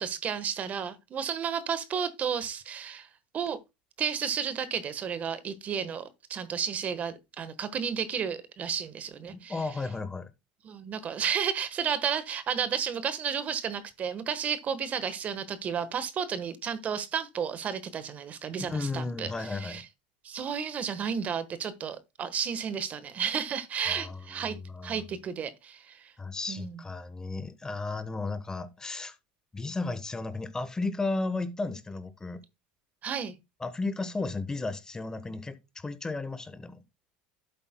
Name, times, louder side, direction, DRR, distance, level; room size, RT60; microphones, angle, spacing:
voice 1, 0.0-3.1 3.3-3.6 4.0-9.6 10.6-19.8 20.2-24.6 24.8-26.1 26.5-26.8 33.0-33.4, right 7 dB, 40° right, 1.3 m, -32 dB
voice 2, 9.3-10.3 18.6-19.8 23.9-25.1 26.2-29.2 29.5-32.4 33.6-36.8, left 3 dB, 15° left, 1.1 m, -34 dB
12.0 x 8.1 x 2.2 m
supercardioid pair, 100°, 4 cm